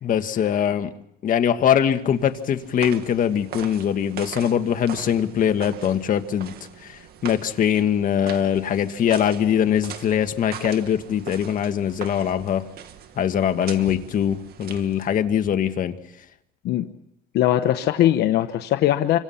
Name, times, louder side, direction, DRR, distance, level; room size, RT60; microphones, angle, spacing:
voice 1, 0.0-0.9 1.2-6.5 7.2-12.6 13.2-15.9, left 9 dB, 55° left, 7 dB, 1.7 m, -22 dB
sound 1, 2.0-15.3, right 9 dB, 65° right, 2.0 m, -41 dB
voice 2, 17.3-19.2, left 12 dB, 80° left, 8 dB, 1.1 m, -20 dB
28.5 x 25.5 x 5.8 m, 0.82 s
cardioid pair, 110°, 17 cm